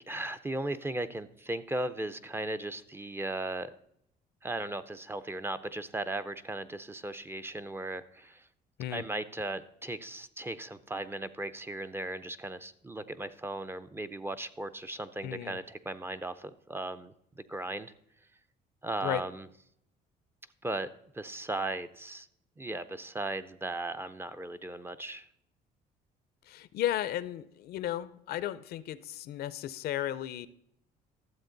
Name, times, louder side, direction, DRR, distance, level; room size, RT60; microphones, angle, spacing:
voice 1, 0.1-3.7 4.4-8.5 8.9-17.9 18.8-19.5 20.6-20.9 21.1-22.3 22.6-25.3, right 2 dB, 15° right, 11 dB, 0.5 m, -37 dB
voice 2, 15.2-15.6 19.0-19.2 26.5-30.5, left 12 dB, 70° left, 16 dB, 0.5 m, -34 dB
12.5 x 7.4 x 3.9 m, 0.74 s
cardioid pair, 110°, 17 cm